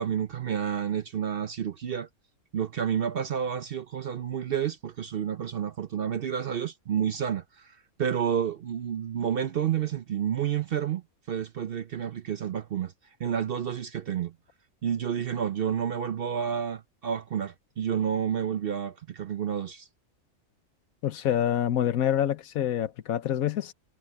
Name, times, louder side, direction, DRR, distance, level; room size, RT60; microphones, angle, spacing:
voice 1, 0.0-2.1 2.5-11.0 11.3-12.9 13.2-14.3 14.8-19.9, right 8 dB, 55° right, 0.7 m, -30 dB
voice 2, 21.0-23.7, left 10 dB, 85° left, 1.3 m, -26 dB
omnidirectional pair, 1.4 m